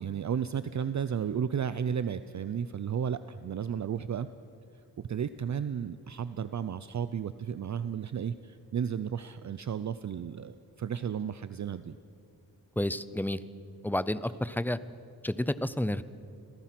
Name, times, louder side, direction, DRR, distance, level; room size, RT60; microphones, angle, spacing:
voice 1, 0.0-4.3 5.0-12.0, right 8 dB, 50° right, 13 dB, 0.5 m, -33 dB
voice 2, 12.8-13.4 13.8-14.8 15.2-16.0, left 1 dB, 5° left, 15 dB, 0.5 m, -30 dB
27.0 x 18.5 x 6.0 m, 2.4 s
wide cardioid pair, 135°, 38 cm